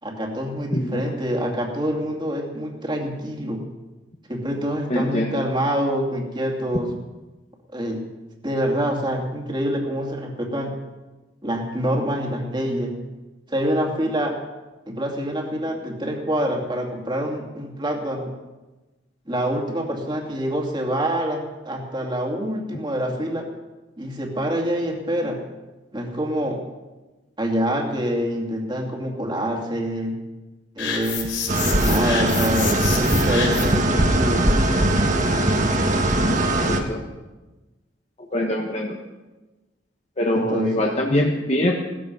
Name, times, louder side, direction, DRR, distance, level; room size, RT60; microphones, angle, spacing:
voice 1, 0.0-3.6 4.3-6.9 7.7-8.0 8.4-10.7 11.4-13.0 13.5-14.3 14.9-18.3 19.3-23.5 24.0-25.4 25.9-26.6 27.4-30.2 30.8-31.4 31.8-34.4 40.3-40.7, equal, 25° right, 1 dB, 2.5 m, -26 dB
voice 2, 4.9-5.4 36.7-37.0 38.3-39.0 40.2-41.8, left 1 dB, 35° left, 0 dB, 1.3 m, -23 dB
sound 1, 30.8-33.9, left 7 dB, 80° left, 3.8 m, -29 dB
sound 2, 31.5-36.8, right 1 dB, 40° right, 1.6 m, -20 dB
18.5 x 14.0 x 5.5 m, 1.1 s
head